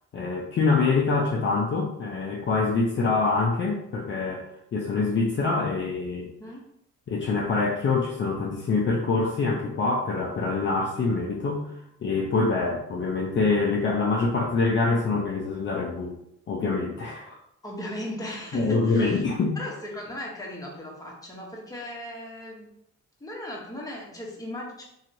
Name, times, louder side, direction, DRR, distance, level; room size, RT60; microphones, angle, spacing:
voice 1, 0.1-4.4 4.7-6.3 7.1-11.7 12.0-16.1 16.5-17.4 18.5-19.6, left 3 dB, 40° left, -2 dB, 0.5 m, -25 dB
voice 2, 17.6-19.2 19.6-22.7 23.2-24.8, left 1 dB, 10° left, -2 dB, 0.9 m, -37 dB
2.9 x 2.8 x 2.6 m, 0.76 s
cardioid pair, 90°, 30 cm